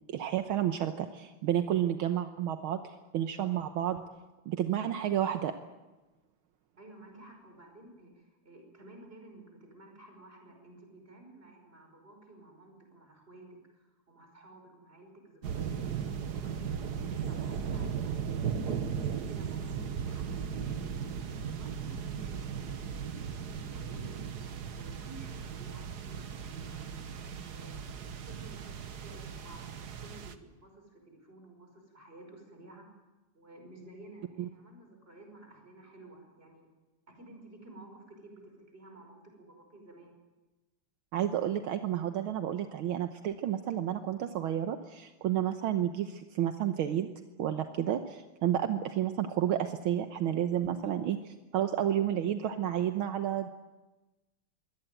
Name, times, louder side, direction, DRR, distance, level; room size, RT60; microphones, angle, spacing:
voice 1, 0.1-4.0 4.5-5.5 34.4-34.5 41.1-47.1 47.4-53.5, right 10 dB, 75° right, 7 dB, 1.8 m, -31 dB
voice 2, 6.8-18.1 18.6-20.4 20.9-24.3 24.7-27.0 27.4-29.8 30.0-32.9 33.3-36.7 37.1-40.1, right 2 dB, 25° right, 3 dB, 5.7 m, -53 dB
sound 1, 15.4-30.4, right 7 dB, 50° right, 1.6 m, -37 dB
23.5 x 17.5 x 9.2 m, 1.1 s
omnidirectional pair, 2.4 m